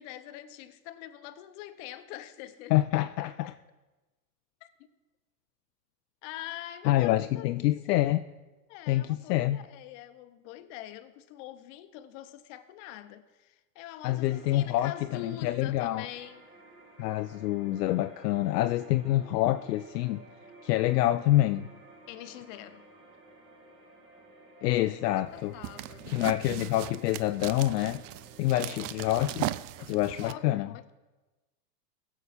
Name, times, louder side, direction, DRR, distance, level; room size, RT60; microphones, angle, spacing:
voice 1, 0.0-2.7 3.2-3.6 4.6-4.7 6.2-7.8 8.7-16.4 22.1-22.9 24.7-25.0 25.3-26.2 28.6-29.0 29.8-30.9, left 12 dB, 50° left, 0.9 m, -44 dB
voice 2, 2.7-3.5 6.8-8.3 8.9-9.6 14.0-16.1 17.0-20.2 20.6-21.7 24.6-25.5 26.1-28.0 28.4-29.5 29.9-30.7, left 15 dB, 70° left, 0.6 m, -27 dB
sound 1, 14.2-29.3, right 1 dB, 25° right, 1.9 m, -54 dB
sound 2, 25.3-30.3, right 15 dB, 50° right, 0.5 m, -38 dB
16.5 x 7.1 x 4.2 m
hypercardioid pair, 115°, 50 cm